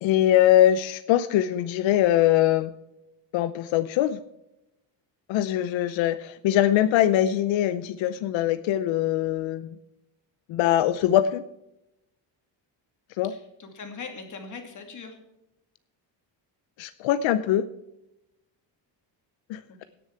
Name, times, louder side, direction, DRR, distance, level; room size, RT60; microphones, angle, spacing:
voice 1, 0.0-2.7 3.3-4.2 5.3-9.7 10.5-11.4 13.2-13.3 16.8-17.7 19.5-19.8, left 12 dB, 90° left, 13 dB, 0.7 m, -22 dB
voice 2, 13.2-15.2, left 4 dB, 40° left, 5 dB, 2.5 m, -40 dB
17.5 x 7.0 x 4.6 m, 0.88 s
cardioid pair, 135°, 45 cm